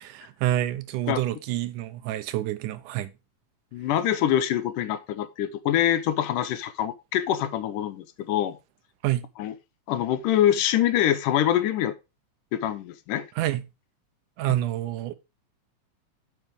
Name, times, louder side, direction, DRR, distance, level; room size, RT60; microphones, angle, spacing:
voice 1, 0.4-3.1 9.0-9.3 13.4-13.6 14.4-15.1, right 14 dB, 85° right, 2.3 m, -27 dB
voice 2, 3.7-8.6 9.4-9.6 9.9-11.9 12.5-13.3, left 11 dB, 85° left, 2.5 m, -25 dB
7.8 x 5.7 x 5.1 m
omnidirectional pair, 3.6 m